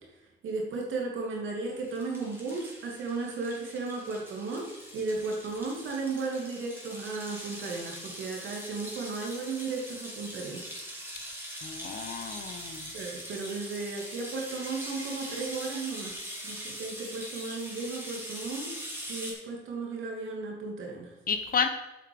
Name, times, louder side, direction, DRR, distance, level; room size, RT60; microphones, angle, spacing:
voice 1, 0.4-10.7 12.9-18.8 19.1-21.1, right 3 dB, 75° right, 0 dB, 2.3 m, -35 dB
sound 1, 1.7-19.3, equal, 10° right, 2.8 m, -42 dB
voice 2, 11.6-12.9 21.3-21.7, left 6 dB, 45° left, 8 dB, 1.1 m, -31 dB
8.1 x 6.0 x 5.3 m, 0.99 s
cardioid pair, 90°, 20 cm